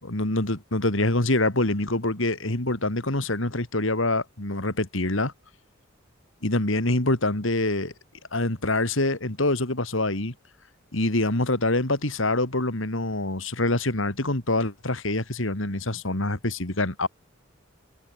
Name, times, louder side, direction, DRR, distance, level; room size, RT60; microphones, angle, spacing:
voice 1, 0.0-5.3 6.4-7.9 8.3-10.3 10.9-17.1, left 2 dB, 70° left, 3.0 m, -25 dB
head